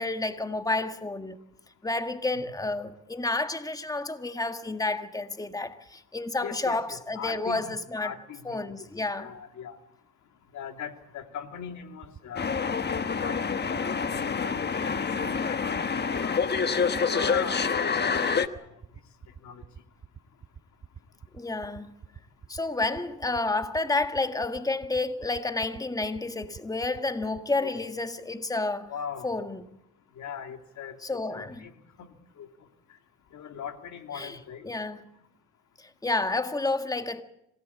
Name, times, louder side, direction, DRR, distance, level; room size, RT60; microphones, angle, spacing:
voice 1, 0.0-1.4 1.8-8.1 8.4-9.3 21.3-21.9 22.5-28.9 29.2-29.6 31.0-31.6 34.1-34.3 34.6-35.0 35.8-37.2, left 2 dB, 10° left, 1.6 m, -30 dB
voice 2, 6.4-8.7 9.2-9.8 10.5-15.0 15.4-16.4 17.0-18.2 18.5-18.7 19.4-19.6 27.6-27.8 28.9-29.3 30.2-31.0 31.3-31.7 32.0-32.1 32.4-32.5 33.3-34.7, left 7 dB, 70° left, 2.8 m, -40 dB
sound 1, 12.0-27.4, right 7 dB, 40° right, 1.4 m, -45 dB
sound 2, 12.4-18.5, left 5 dB, 35° left, 1.3 m, -27 dB
26.5 x 18.0 x 8.4 m
cardioid pair, 90°, 30 cm